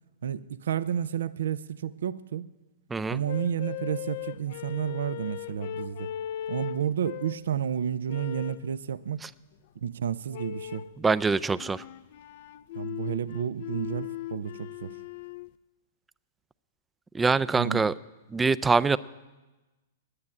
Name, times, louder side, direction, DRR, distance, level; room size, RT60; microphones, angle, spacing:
voice 1, 0.2-2.5 3.1-6.1 6.5-9.2 9.8-10.9 12.7-15.0 17.6-17.8, right 9 dB, 75° right, 0.5 m, -31 dB
sound 1, 3.3-7.5 8.1-8.7 10.3-11.0 11.5-15.5, left 13 dB, 55° left, 0.4 m, -38 dB
voice 2, 11.0-11.8 17.1-17.9 18.3-19.0, right 4 dB, 10° right, 0.4 m, -24 dB
9.7 x 9.3 x 9.8 m
hypercardioid pair, 120°, 0 cm